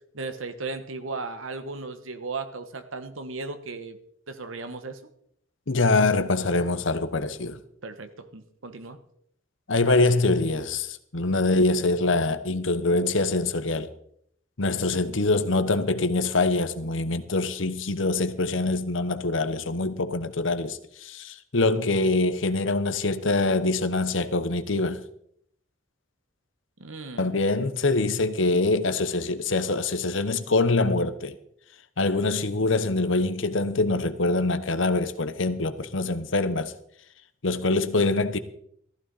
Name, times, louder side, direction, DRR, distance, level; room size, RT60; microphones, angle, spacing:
voice 1, 0.1-4.0 4.3-5.0 7.8-9.0 26.8-27.3, right 3 dB, 80° right, 1.4 m, -36 dB
voice 2, 5.7-7.6 9.7-13.9 14.6-25.0 27.2-31.4 32.0-36.7 37.4-38.4, left 2 dB, 70° left, 1.1 m, -24 dB
14.5 x 14.5 x 4.2 m
head